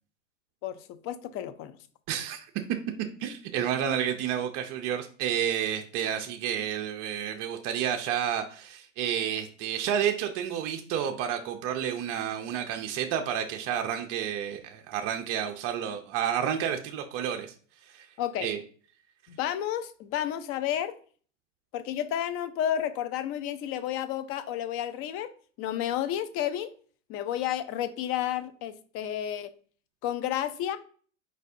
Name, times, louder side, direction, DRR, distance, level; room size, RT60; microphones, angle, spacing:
voice 1, 0.6-1.8 18.2-18.5 19.3-21.0 21.7-25.3 25.6-26.7 27.1-29.5 30.0-30.8, left 11 dB, 40° left, 12 dB, 0.6 m, -31 dB
voice 2, 2.1-2.4 3.2-17.5 17.8-18.1 18.4-18.6, right 9 dB, 40° right, 4 dB, 0.6 m, -30 dB
4.8 x 4.1 x 2.7 m, 0.43 s
hypercardioid pair, 120°, 37 cm